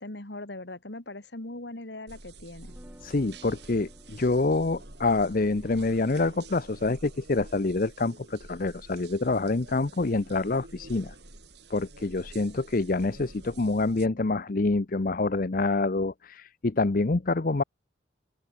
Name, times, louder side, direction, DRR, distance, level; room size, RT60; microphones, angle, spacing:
voice 1, 0.0-2.7, left 2 dB, 65° left, 2.4 m, -40 dB
sound 1, 2.1-14.1, right 2 dB, 60° right, 4.9 m, -49 dB
sound 2, 2.6-8.6, equal, 10° right, 4.2 m, -58 dB
voice 2, 3.0-11.1 11.7-17.6, left 3 dB, 45° left, 0.7 m, -26 dB
open air
head